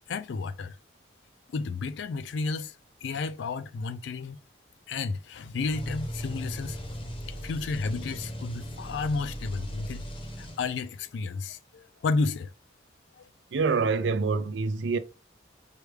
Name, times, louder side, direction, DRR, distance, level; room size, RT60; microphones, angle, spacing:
voice 1, 0.1-0.8 1.5-2.7 3.0-4.4 4.9-6.8 7.4-10.0 10.4-12.5 13.2-13.3, left 4 dB, 75° left, 0.3 m, -32 dB
sound 1, 5.6-11.0, equal, 30° left, 0.6 m, -38 dB
voice 2, 13.5-15.0, right 4 dB, 70° right, 0.4 m, -26 dB
4.8 x 2.2 x 3.3 m
head